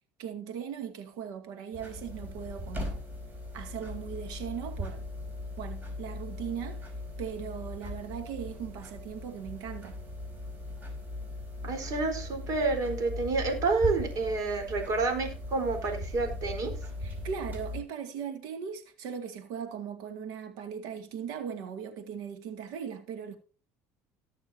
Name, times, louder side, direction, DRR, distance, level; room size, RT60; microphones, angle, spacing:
voice 1, 0.2-3.0 3.5-5.0 5.6-6.9 7.2-10.0 17.0-23.4, right 7 dB, 75° right, 2.2 m, -39 dB
sound 1, 1.7-17.8, left 1 dB, 25° right, 4.9 m, -39 dB
voice 2, 11.6-16.8, right 3 dB, 55° right, 4.2 m, -29 dB
18.5 x 6.7 x 2.8 m
supercardioid pair, 95°, 7 cm